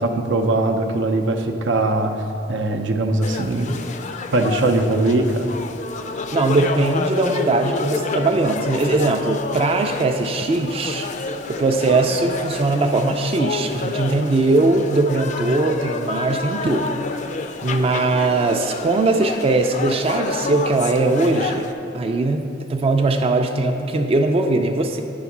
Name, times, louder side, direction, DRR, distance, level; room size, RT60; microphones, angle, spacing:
voice 1, 0.0-2.1 2.5-3.8 4.3-5.5, right 2 dB, 85° right, 5 dB, 0.6 m, -20 dB
sound 1, 3.2-21.7, left 4 dB, 40° left, 0.4 m, -29 dB
voice 2, 6.3-11.1 11.6-17.0 17.6-21.7 21.9-25.0, right 2 dB, 30° right, 5 dB, 0.3 m, -20 dB
9.3 x 3.5 x 5.9 m, 2.7 s
head